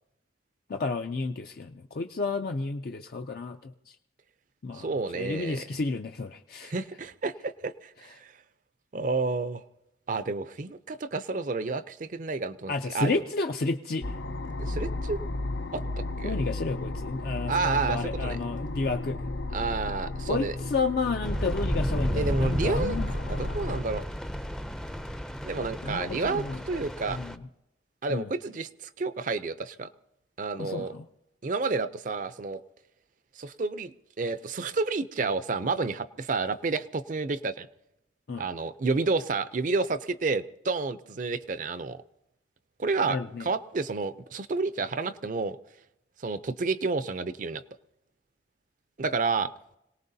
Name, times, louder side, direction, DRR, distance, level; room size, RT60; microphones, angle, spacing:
voice 1, 0.7-3.9 4.6-4.9 5.1-6.7 12.7-14.1 16.2-19.2 20.3-23.1 25.8-26.6 27.1-27.4 28.1-28.3 30.6-31.0 38.3-38.4 43.1-43.5, left 3 dB, 55° left, 5 dB, 0.5 m, -31 dB
voice 2, 4.7-5.6 6.6-8.3 8.9-9.6 10.1-13.2 14.6-15.2 15.7-16.3 17.5-18.4 19.5-20.5 22.1-23.0 23.3-24.0 25.4-27.2 28.0-29.9 30.4-30.9 31.4-32.6 33.4-37.7 38.4-42.0 42.8-45.6 46.2-47.6 49.0-49.5, right 4 dB, 45° right, 12 dB, 0.5 m, -30 dB
sound 1, 14.0-23.8, left 2 dB, 90° left, 0.7 m, -34 dB
sound 2, 21.2-27.4, equal, 5° left, 0.5 m, -32 dB
26.0 x 18.0 x 2.7 m, 0.89 s
head